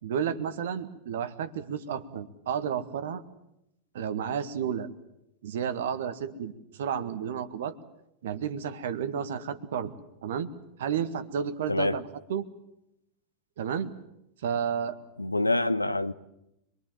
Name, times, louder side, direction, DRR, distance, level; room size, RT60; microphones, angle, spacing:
voice 1, 0.0-3.2 3.9-4.9 5.4-7.8 8.2-9.9 10.2-10.5 10.8-12.5 13.6-13.9 14.4-15.0, right 8 dB, 60° right, 1.8 m, -31 dB
voice 2, 11.7-12.0 15.2-16.1, left 2 dB, 85° left, 0.9 m, -26 dB
26.5 x 23.0 x 7.5 m
figure-of-eight pair, 90°, 0 cm